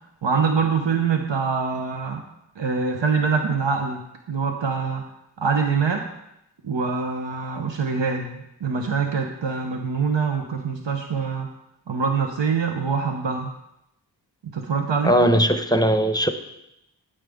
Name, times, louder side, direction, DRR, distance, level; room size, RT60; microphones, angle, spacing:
voice 1, 0.2-2.2 2.6-4.0 4.3-5.0 5.4-6.0 6.6-11.5 11.9-13.5 14.4-15.2, right 5 dB, 90° right, 4 dB, 0.8 m, -24 dB
voice 2, 15.0-16.3, equal, 10° left, 8 dB, 0.7 m, -19 dB
8.8 x 8.8 x 3.5 m, 0.83 s
wide cardioid pair, 40°, 42 cm